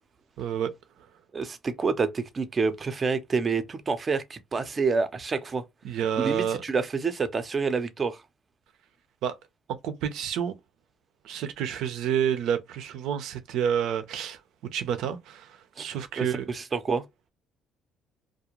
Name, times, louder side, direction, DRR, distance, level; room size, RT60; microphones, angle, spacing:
voice 1, 0.4-0.7 1.0-1.1 5.8-6.6 9.2-9.4 9.7-10.5 11.2-14.4 14.7-16.5, right 8 dB, 75° right, 0.6 m, -29 dB
voice 2, 1.3-5.6 6.2-8.2 15.8-15.9 16.2-16.3 16.5-17.0, right 4 dB, 35° right, 0.6 m, -28 dB
2.4 x 2.1 x 3.0 m
supercardioid pair, 85°, 0 cm